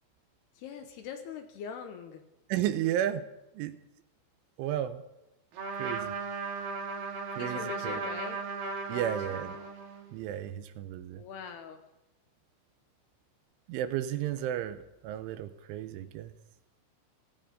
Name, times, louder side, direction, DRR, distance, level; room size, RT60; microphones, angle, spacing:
voice 1, 0.6-2.2 7.3-8.4 8.9-9.5 11.1-11.8, left 7 dB, 75° left, 6 dB, 2.5 m, -43 dB
voice 2, 2.5-3.3 3.6-3.8 4.6-5.0 5.7-6.1 7.3-8.0 8.9-9.5 10.1-11.2 13.7-16.3, right 11 dB, 80° right, 10 dB, 3.1 m, -33 dB
Trumpet, 5.5-10.1, right 4 dB, 55° right, 3.4 m, -36 dB
17.0 x 16.0 x 5.3 m, 0.92 s
omnidirectional pair, 5.9 m